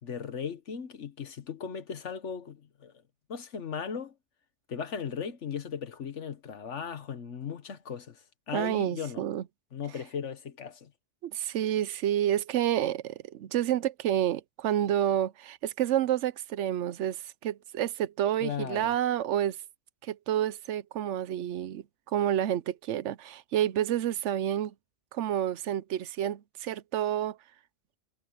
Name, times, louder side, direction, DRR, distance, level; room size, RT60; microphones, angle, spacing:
voice 1, 0.0-2.9 3.3-4.1 4.7-9.2 9.7-10.9 18.4-18.9, left 7 dB, 85° left, 1.6 m, -37 dB
voice 2, 8.5-9.4 11.2-19.6 20.0-24.7 25.1-27.4, right 11 dB, 80° right, 0.9 m, -29 dB
omnidirectional pair, 1.2 m